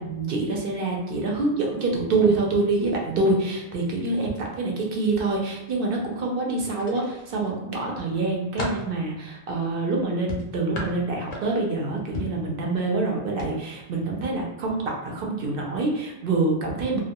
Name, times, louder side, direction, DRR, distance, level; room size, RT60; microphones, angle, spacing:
voice 1, 0.0-17.0, right 3 dB, 65° right, 0 dB, 0.7 m, -26 dB
sound 1, 6.8-7.5 8.0-8.9 10.3-11.7 12.1-12.4 13.3-13.5 13.9-14.0, left 2 dB, 50° left, 0.5 m, -34 dB
2.2 x 2.1 x 2.8 m, 0.98 s
omnidirectional pair, 1.1 m